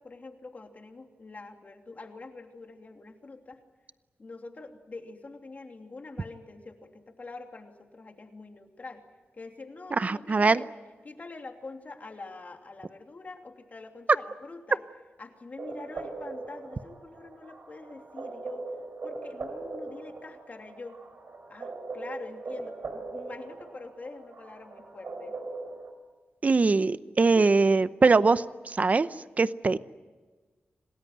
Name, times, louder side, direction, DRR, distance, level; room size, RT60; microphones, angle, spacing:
voice 1, 0.0-3.6 4.2-9.0 9.3-10.7 11.0-14.8 15.2-18.6 19.0-21.0 21.5-25.4 27.3-27.6, left 3 dB, 40° left, 4 dB, 2.9 m, -45 dB
voice 2, 9.9-10.6 26.4-29.1 29.4-29.8, right 4 dB, 40° right, 15 dB, 0.7 m, -22 dB
sound 1, 15.6-25.9, right 3 dB, 60° right, 4.7 m, -40 dB
27.0 x 19.0 x 9.4 m, 1.3 s
wide cardioid pair, 110°, 4 cm